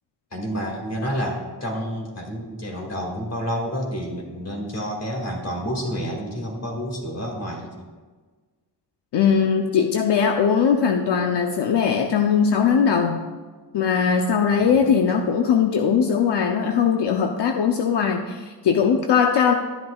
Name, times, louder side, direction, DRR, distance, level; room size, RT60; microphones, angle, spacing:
voice 1, 0.3-7.9 14.6-14.9, equal, 40° left, 1 dB, 2.1 m, -29 dB
voice 2, 9.1-13.2 13.7-19.5, left 6 dB, 75° left, 4 dB, 0.7 m, -20 dB
12.5 x 10.5 x 2.3 m, 1.4 s
wide cardioid pair, 140°, 42 cm